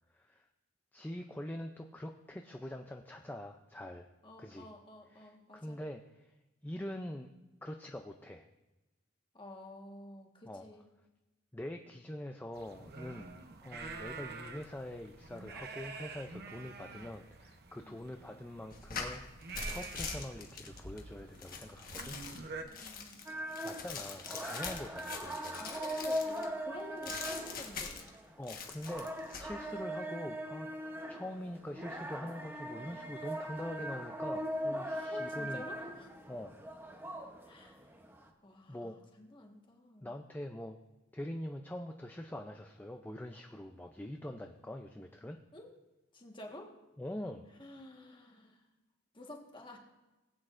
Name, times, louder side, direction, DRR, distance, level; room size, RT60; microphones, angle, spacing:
voice 1, 0.1-0.4 0.9-4.1 4.4-4.7 5.1-6.3 6.6-7.3 7.6-8.5 10.5-10.7 11.5-13.4 13.6-19.3 19.6-22.2 23.6-26.1 28.4-30.7 31.1-35.6 36.3-36.5 38.7-39.0 40.0-40.8 41.1-45.4 47.0-47.5, left 1 dB, 10° left, 4 dB, 0.4 m, -44 dB
voice 2, 4.2-5.8 9.3-10.9 17.8-18.0 22.6-23.2 25.1-28.1 34.7-36.1 37.5-37.9 38.4-40.1 45.5-45.7 46.1-46.7 47.6-48.6 49.1-49.8, left 1 dB, 25° left, 1 dB, 1.4 m, -51 dB
sound 1, 12.5-22.6, right 4 dB, 50° right, 0.9 m, -48 dB
sound 2, 18.7-26.5 27.0-28.1 28.4-29.5, left 5 dB, 45° left, 1.4 m, -43 dB
sound 3, 23.2-38.3, equal, 10° right, 0.9 m, -40 dB
19.5 x 8.6 x 2.5 m, 1.1 s
head